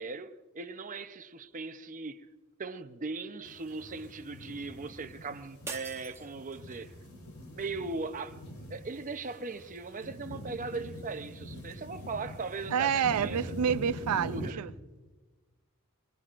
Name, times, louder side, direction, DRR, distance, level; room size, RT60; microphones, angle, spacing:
voice 1, 0.0-2.3 2.6-6.9 7.5-8.4 8.7-13.4 14.3-14.6, right 3 dB, 35° right, 0.7 m, -39 dB
sound 1, 3.4-14.5, left 1 dB, 80° left, 3.5 m, -44 dB
sound 2, 5.7-6.9, right 4 dB, 10° right, 0.9 m, -44 dB
voice 2, 12.7-14.7, right 8 dB, 90° right, 0.4 m, -28 dB
26.0 x 21.0 x 2.5 m
head